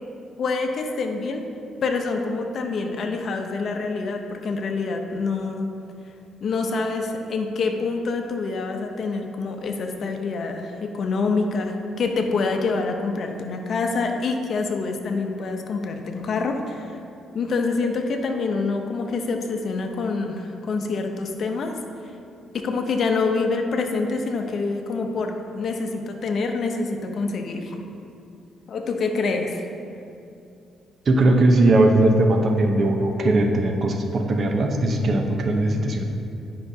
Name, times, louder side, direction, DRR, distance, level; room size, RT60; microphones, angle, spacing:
voice 1, 0.4-1.5 1.8-5.7 6.4-17.0 17.3-21.7 22.5-27.8 28.7-29.7, left 4 dB, 60° left, 4 dB, 0.7 m, -26 dB
voice 2, 31.1-36.0, right 2 dB, 50° right, 3 dB, 0.8 m, -19 dB
10.0 x 5.6 x 2.8 m, 2.6 s
cardioid pair, 90°, 0 cm